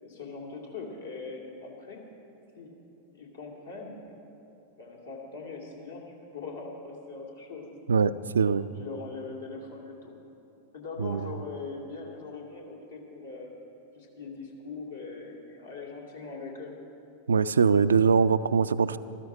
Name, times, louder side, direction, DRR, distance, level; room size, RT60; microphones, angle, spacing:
voice 1, 0.0-2.0 2.6-2.7 3.1-4.2 4.8-7.7 8.4-10.1 10.7-13.5 13.9-16.7, left 4 dB, 70° left, -2 dB, 2.4 m, -41 dB
voice 2, 7.9-8.7 11.0-11.2 17.3-19.0, right 5 dB, 70° right, 15 dB, 0.3 m, -22 dB
14.5 x 13.5 x 5.0 m, 2.8 s
figure-of-eight pair, 90°, 0 cm